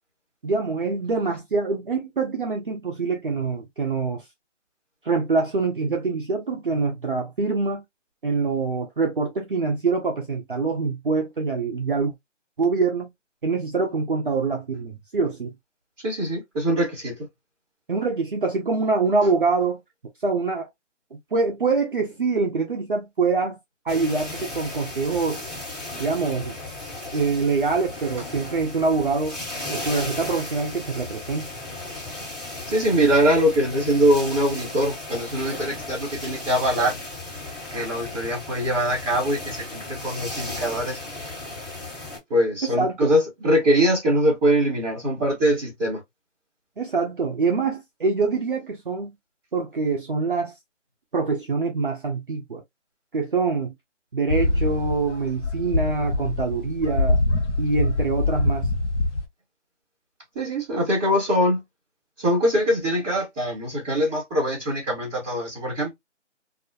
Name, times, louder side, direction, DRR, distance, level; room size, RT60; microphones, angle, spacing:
voice 1, 0.4-4.2 5.0-7.8 8.2-12.1 12.6-13.1 13.4-15.5 17.9-19.8 20.2-20.7 21.1-23.6 23.9-25.4 26.0-26.6 27.1-29.4 29.7-31.5 42.6-43.1 46.8-49.1 49.5-50.5 51.1-52.6 53.1-53.7 54.1-57.2 57.6-58.7, right 4 dB, 45° right, 0.5 m, -25 dB
voice 2, 16.0-17.2 32.7-37.0 37.7-41.0 42.3-46.0 60.3-61.6 62.2-65.9, equal, 5° right, 0.9 m, -22 dB
sound 1, 23.9-42.2, left 2 dB, 35° left, 1.4 m, -35 dB
sound 2, 54.3-59.3, left 2 dB, 70° left, 0.7 m, -24 dB
2.3 x 2.1 x 2.5 m
figure-of-eight pair, 160°, 36 cm